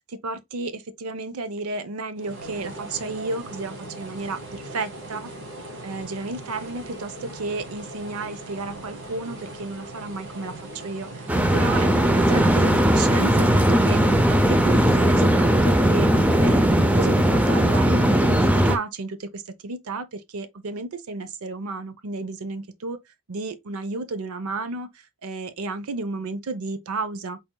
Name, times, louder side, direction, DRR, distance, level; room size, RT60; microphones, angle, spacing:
voice 1, 0.1-5.2 5.8-10.6 10.8-23.0 23.3-24.9 25.2-27.4, right 3 dB, 75° right, 0.6 m, -32 dB
sound 1, 2.2-15.1, right 1 dB, 55° right, 1.4 m, -39 dB
sound 2, 11.3-18.8, right 1 dB, 5° right, 0.4 m, -18 dB
4.1 x 3.7 x 2.2 m
head